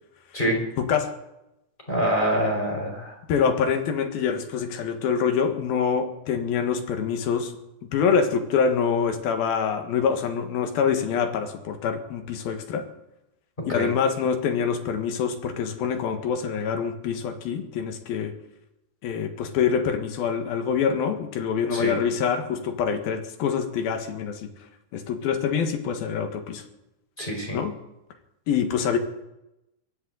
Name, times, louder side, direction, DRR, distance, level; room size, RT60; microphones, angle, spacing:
voice 1, 0.8-1.1 3.3-7.5 7.8-12.9 13.7-18.3 19.0-24.5 24.9-26.6 27.5-27.8 28.5-29.0, left 6 dB, 70° left, 7 dB, 3.2 m, -25 dB
voice 2, 1.9-3.2 13.7-13.9 21.7-22.0 27.2-27.6, equal, 10° left, 0 dB, 4.5 m, -25 dB
22.0 x 16.0 x 4.0 m, 0.89 s
omnidirectional pair, 4.7 m